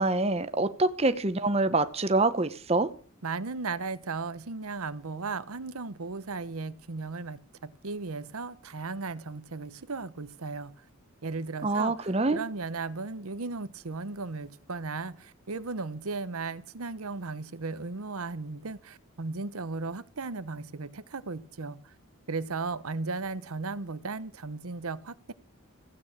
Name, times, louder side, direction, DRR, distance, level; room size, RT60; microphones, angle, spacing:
voice 1, 0.0-2.9 11.6-12.4, right 2 dB, 30° right, 0.8 m, -25 dB
voice 2, 3.2-10.8 11.2-21.9 22.3-25.3, right 3 dB, 85° right, 0.9 m, -36 dB
16.0 x 8.7 x 7.4 m
head